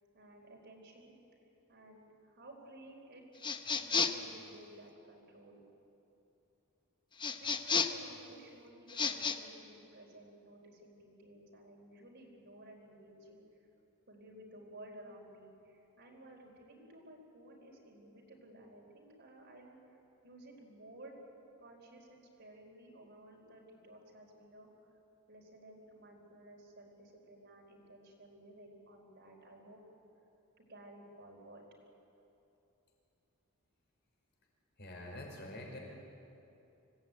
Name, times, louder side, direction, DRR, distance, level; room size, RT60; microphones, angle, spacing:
voice 1, 0.1-1.2 1.7-3.2 3.8-5.7 7.3-13.4 14.1-20.0 20.2-21.2 21.6-24.7 25.3-29.8 30.6-31.6, right 1 dB, 55° right, 0 dB, 4.5 m, -55 dB
sound 1, 3.4-4.3 7.2-8.1 8.9-9.4, left 5 dB, 20° left, 0.9 m, -32 dB
voice 2, 34.8-35.8, left 1 dB, 50° left, 0 dB, 5.5 m, -46 dB
25.5 x 18.0 x 9.2 m, 2.9 s
head